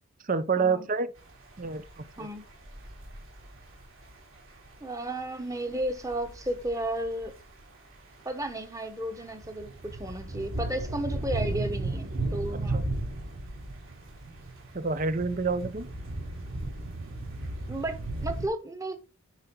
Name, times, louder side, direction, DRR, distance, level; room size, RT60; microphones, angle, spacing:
voice 1, 0.2-1.1 1.6-2.3 12.7-12.8 14.7-15.9, right 4 dB, 35° right, 0.7 m, -28 dB
sound 1, 1.2-18.5, right 2 dB, 60° right, 3.8 m, -36 dB
voice 2, 4.8-7.4 8.2-12.8 17.7-19.0, right 1 dB, 15° right, 1.2 m, -33 dB
10.5 x 5.6 x 3.9 m
head